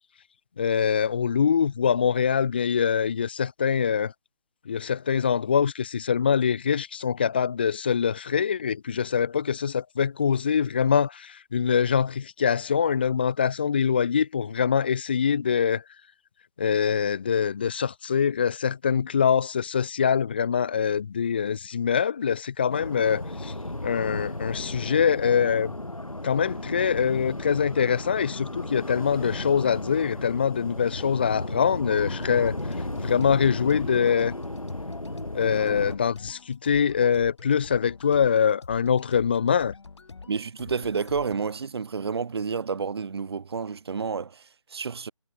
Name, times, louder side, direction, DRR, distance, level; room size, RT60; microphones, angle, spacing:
voice 1, 0.6-4.1 4.7-15.8 16.6-23.5 23.8-25.7 26.2-32.6 33.0-34.4 35.3-39.7, left 7 dB, 20° left, 0.4 m, -24 dB
sound 1, 22.7-36.0, left 1 dB, 80° left, 5.4 m, -34 dB
sound 2, 31.9-41.4, left 4 dB, 55° left, 4.2 m, -45 dB
voice 2, 40.3-45.1, right 5 dB, 45° right, 2.5 m, -30 dB
figure-of-eight pair, 145°, 18 cm